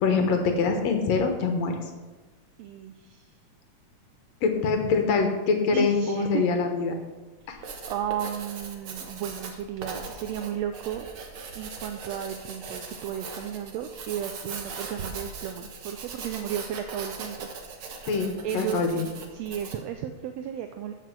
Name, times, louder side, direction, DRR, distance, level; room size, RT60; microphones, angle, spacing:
voice 1, 0.0-1.7 4.4-6.9 7.5-7.6 18.1-19.1, left 4 dB, 65° left, 4 dB, 2.4 m, -24 dB
voice 2, 2.6-3.2 5.7-6.4 7.4-11.1 11.5-17.4 17.7-18.0 18.4-19.0 19.3-20.9, right 9 dB, 75° right, 7 dB, 1.7 m, -34 dB
Writing, 7.4-19.9, right 5 dB, 55° right, 1.9 m, -40 dB
14.5 x 6.1 x 6.1 m, 1.3 s
omnidirectional pair, 3.3 m